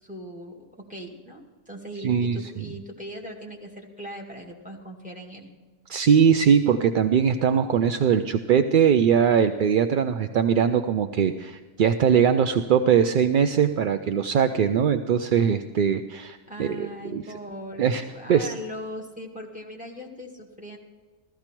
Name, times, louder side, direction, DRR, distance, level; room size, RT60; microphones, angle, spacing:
voice 1, 0.0-5.5 16.5-20.8, equal, 5° right, 0 dB, 2.1 m, -39 dB
voice 2, 2.0-2.4 5.9-17.2 17.8-18.0 18.3-18.5, right 7 dB, 55° right, 9 dB, 0.6 m, -21 dB
15.0 x 14.0 x 4.5 m, 1.4 s
omnidirectional pair, 1.2 m